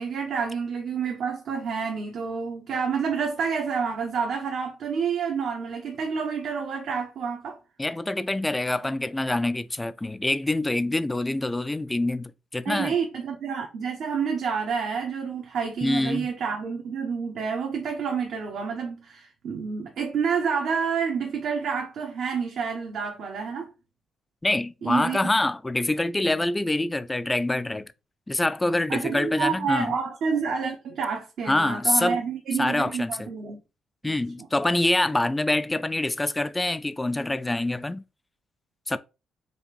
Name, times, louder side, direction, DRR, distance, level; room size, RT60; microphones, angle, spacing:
voice 1, 0.0-7.6 12.6-23.7 24.8-25.2 28.9-33.6 34.0-34.5, right 6 dB, 70° right, 0.8 m, -29 dB
voice 2, 7.8-12.9 15.8-16.3 24.4-27.9 28.3-29.9 31.5-32.2 32.6-33.3 34.0-38.0 38.9-39.0, left 2 dB, 15° left, 0.3 m, -25 dB
5.0 x 2.5 x 3.3 m
cardioid pair, 90°, 0 cm